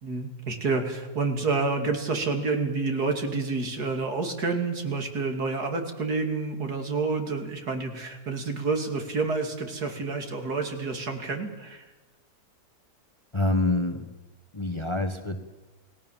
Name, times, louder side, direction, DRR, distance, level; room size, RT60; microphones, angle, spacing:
voice 1, 0.0-11.8, right 4 dB, 70° right, 5 dB, 3.3 m, -29 dB
voice 2, 13.3-14.1 14.5-15.4, left 2 dB, 20° left, 7 dB, 1.5 m, -26 dB
29.0 x 18.5 x 7.4 m, 1.1 s
omnidirectional pair, 1.7 m